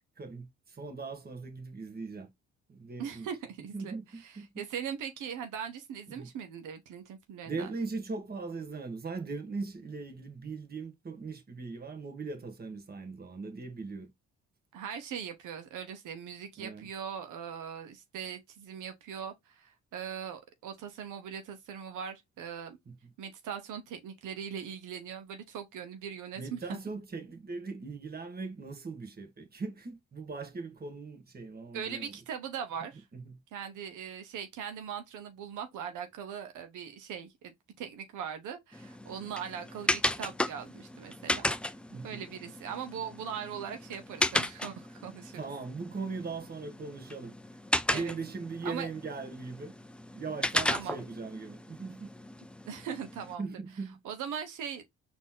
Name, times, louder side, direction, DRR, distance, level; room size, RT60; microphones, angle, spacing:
voice 1, 0.2-2.3 2.7-3.3 3.7-4.6 6.1-6.3 7.4-14.1 16.6-16.9 22.9-23.0 26.3-32.1 33.1-33.4 41.9-42.2 45.3-47.3 47.9-49.7 50.1-52.1 53.4-54.0, right 4 dB, 30° right, 1.5 m, -39 dB
voice 2, 3.0-7.7 14.7-22.8 23.2-26.8 31.7-33.1 33.5-41.5 42.0-45.4 47.9-48.1 48.6-48.9 50.7-51.0 52.6-53.6 54.0-54.8, right 8 dB, 85° right, 1.0 m, -40 dB
sound 1, 38.7-53.3, left 1 dB, 5° left, 0.3 m, -35 dB
4.2 x 2.9 x 3.7 m
cardioid pair, 90°, 30 cm